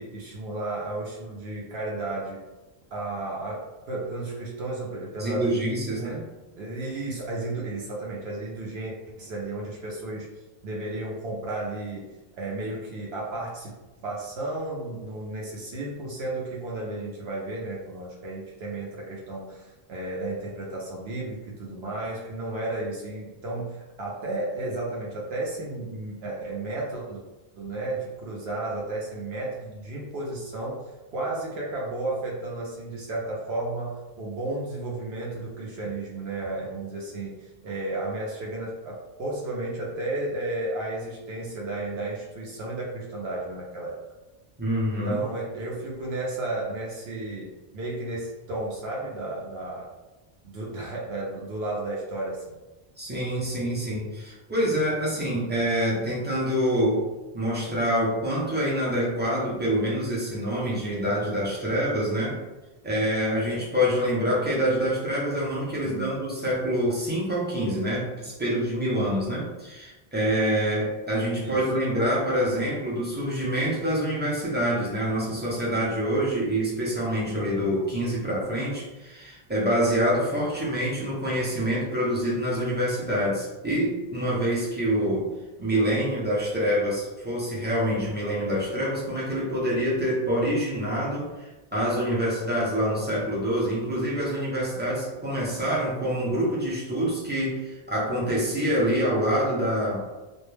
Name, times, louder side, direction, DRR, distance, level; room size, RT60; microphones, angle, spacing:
voice 1, 0.0-2.4 2.9-5.5 5.9-6.3 6.6-10.3 10.6-13.7 14.0-27.2 27.6-30.8 31.1-44.0 45.0-49.9 50.4-52.6 65.8-66.2 71.4-71.6, right 2 dB, 75° right, -3 dB, 0.8 m, -33 dB
voice 2, 5.2-6.2 44.6-45.2 53.0-57.0 57.3-62.4 62.8-85.3 85.6-100.0, equal, 15° right, -6 dB, 0.5 m, -26 dB
2.2 x 2.0 x 3.1 m, 1.1 s
omnidirectional pair, 1.1 m